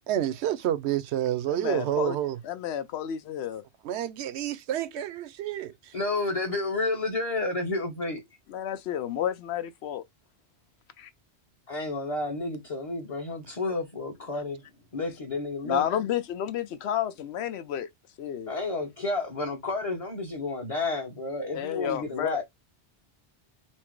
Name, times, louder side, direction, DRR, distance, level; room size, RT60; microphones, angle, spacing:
voice 1, 0.1-2.4 3.8-6.0, right 11 dB, 75° right, 0.8 m, -29 dB
voice 2, 1.5-2.2 2.4-3.6 8.5-10.0 11.0-11.1 15.6-17.9 18.2-18.5 21.5-22.4, left 10 dB, 70° left, 0.8 m, -31 dB
voice 3, 5.9-8.2 11.7-14.6 14.9-15.8 18.5-22.4, left 2 dB, 35° left, 0.9 m, -31 dB
4.3 x 2.0 x 4.5 m
omnidirectional pair, 1.1 m